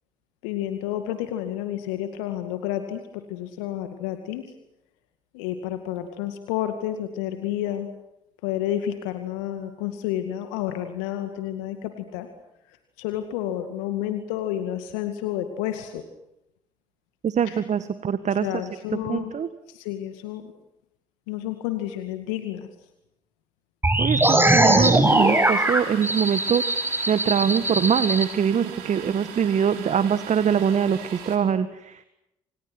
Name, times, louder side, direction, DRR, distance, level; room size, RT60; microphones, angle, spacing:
voice 1, 0.4-4.4 5.3-7.9 8.4-12.3 13.0-16.0 17.5-17.6 18.4-19.3 19.7-20.4 21.3-22.7, left 12 dB, 75° left, 7 dB, 2.2 m, -30 dB
voice 2, 17.2-18.7 19.1-19.5 24.0-26.6 27.1-32.0, right 8 dB, 45° right, 13 dB, 1.8 m, -23 dB
sound 1, 23.8-28.3, right 1 dB, 15° right, 5.9 m, -20 dB
Domestic sounds home sounds, 25.0-31.4, right 8 dB, 75° right, 4.8 m, -40 dB
29.0 x 28.5 x 6.3 m, 0.85 s
hypercardioid pair, 50°, 16 cm